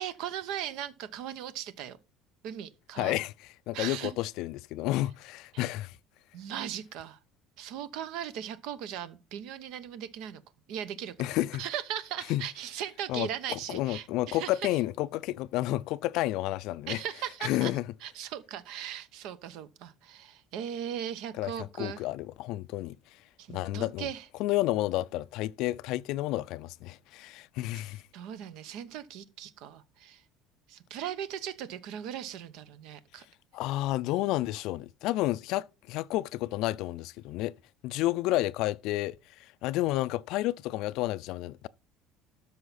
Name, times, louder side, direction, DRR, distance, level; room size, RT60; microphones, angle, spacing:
voice 1, 0.0-2.0 2.4-3.2 3.7-4.1 5.5-5.6 6.3-7.2 7.6-10.4 10.7-11.1 11.6-14.6 16.9-17.7 18.0-22.0 23.4-24.3 28.1-30.2 30.7-33.2, right 10 dB, 65° right, 0.9 m, -38 dB
voice 2, 3.0-3.3 3.7-6.0 11.2-11.6 12.3-12.4 13.1-17.0 17.4-17.8 21.4-23.0 23.5-24.1 24.4-28.0 33.5-37.5 37.8-39.2 39.6-41.7, left 16 dB, 65° left, 0.4 m, -30 dB
12.5 x 5.6 x 4.1 m
cardioid pair, 145°, 0 cm